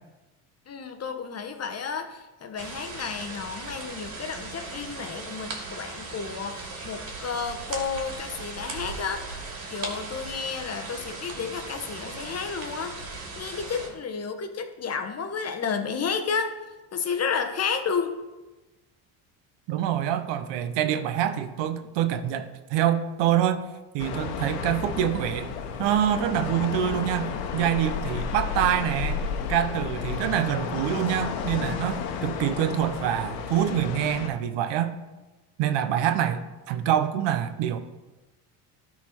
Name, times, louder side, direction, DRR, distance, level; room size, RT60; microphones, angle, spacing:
voice 1, 0.7-9.4 9.7-13.0 13.4-16.5 16.9-18.2, left 6 dB, 30° left, 7 dB, 1.0 m, -31 dB
sound 1, 2.6-13.9, right 3 dB, 45° right, 2.7 m, -38 dB
voice 2, 19.7-23.7 23.9-25.5 25.8-29.2 29.5-34.9 35.6-37.8, right 10 dB, 65° right, 9 dB, 0.8 m, -26 dB
sound 2, 24.0-34.3, left 6 dB, 85° left, 1.0 m, -32 dB
12.5 x 4.3 x 4.4 m, 1.1 s
supercardioid pair, 85°, 47 cm